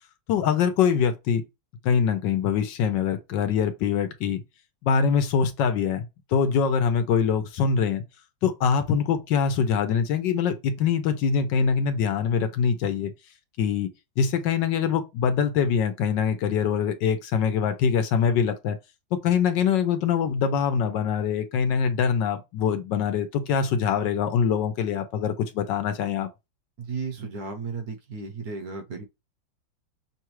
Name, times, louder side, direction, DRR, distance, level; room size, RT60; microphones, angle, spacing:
voice 1, 0.3-1.4 1.8-4.4 4.8-8.0 8.4-13.1 13.6-13.9 14.2-18.8 19.2-26.3, left 7 dB, 75° left, 1.4 m, -24 dB
voice 2, 26.8-29.0, right 4 dB, 60° right, 1.2 m, -34 dB
6.0 x 2.3 x 3.2 m
omnidirectional pair, 2.0 m